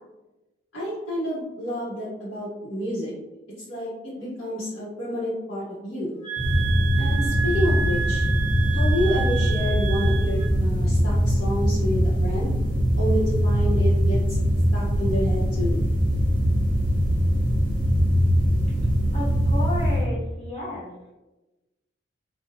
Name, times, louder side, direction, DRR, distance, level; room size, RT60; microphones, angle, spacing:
voice 1, 0.7-3.1 3.7-6.2 7.0-8.3 8.7-12.6 13.0-14.4 14.7-15.8, equal, 85° left, -11 dB, 0.8 m, -29 dB
sound 1, 6.2-10.5, right 8 dB, 5° left, 0.3 m, -31 dB
sound 2, 6.4-20.1, equal, 40° right, 0.7 m, -22 dB
voice 2, 19.1-20.9, left 2 dB, 30° left, -10 dB, 0.7 m, -32 dB
2.7 x 2.1 x 2.6 m, 1.0 s
head